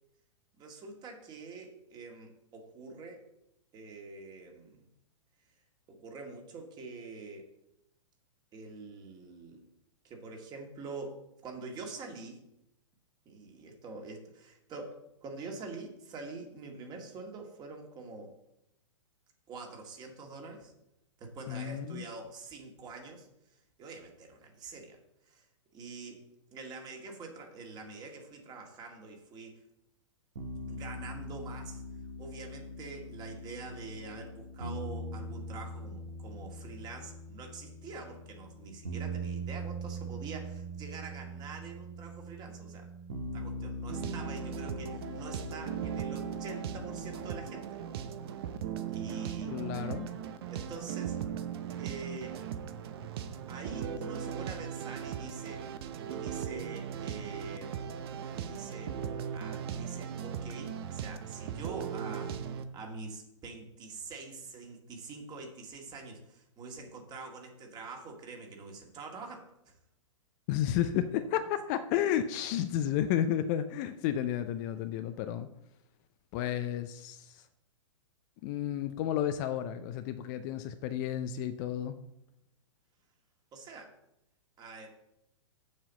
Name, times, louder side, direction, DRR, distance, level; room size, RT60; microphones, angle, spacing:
voice 1, 0.6-3.3 3.7-4.8 5.9-7.5 8.5-9.6 10.0-12.4 13.3-18.3 19.5-20.7 21.2-25.0 25.3-25.4 25.7-26.2 26.5-29.6 30.7-31.8 32.2-42.9 43.3-47.8 48.9-49.5 50.5-51.2 51.8-52.4 53.5-55.7 56.1-57.8 58.3-59.0 59.3-62.3 62.7-69.7 83.5-83.9 84.6-85.0, right 3 dB, 25° right, 2 dB, 2.0 m, -45 dB
voice 2, 21.5-22.0 49.5-50.1 70.5-75.5 76.3-77.4 78.4-81.9, left 10 dB, 35° left, 9 dB, 0.5 m, -32 dB
sound 1, 30.4-47.4, right 1 dB, 65° right, 1.6 m, -42 dB
sound 2, 43.9-62.6, right 8 dB, 50° right, 0.8 m, -38 dB
7.4 x 5.7 x 6.9 m, 0.80 s
figure-of-eight pair, 110°, 17 cm